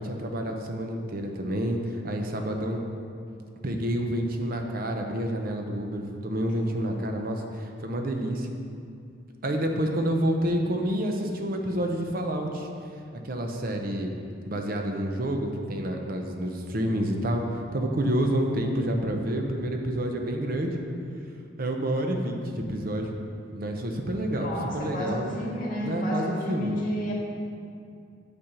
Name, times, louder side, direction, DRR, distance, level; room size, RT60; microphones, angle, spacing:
voice 1, 0.0-2.8 3.6-8.5 9.4-12.7 13.2-14.1 14.5-20.8 21.6-23.1 23.5-25.2 25.8-26.8, right 1 dB, 50° right, 3 dB, 0.7 m, -28 dB
voice 2, 24.3-27.1, equal, 50° left, -4 dB, 1.9 m, -31 dB
8.7 x 4.3 x 6.7 m, 2.4 s
head